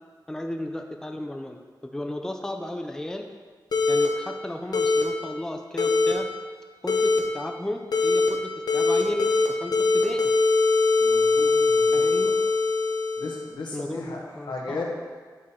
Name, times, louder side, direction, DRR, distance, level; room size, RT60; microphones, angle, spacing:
voice 1, 0.3-3.3 3.9-6.3 6.8-10.3 11.9-12.3 13.7-14.8, left 1 dB, 5° left, 4 dB, 0.4 m, -34 dB
sound 1, 3.7-4.1 4.7-5.0 5.8-6.1 6.9-7.2 7.9-8.3 8.7-9.5 9.7-13.5, left 3 dB, 65° left, 0.8 m, -21 dB
voice 2, 11.0-12.3 13.2-14.2 14.4-14.8, left 3 dB, 85° left, -2 dB, 1.2 m, -36 dB
8.6 x 3.7 x 4.2 m, 1.5 s
wide cardioid pair, 110°, 8 cm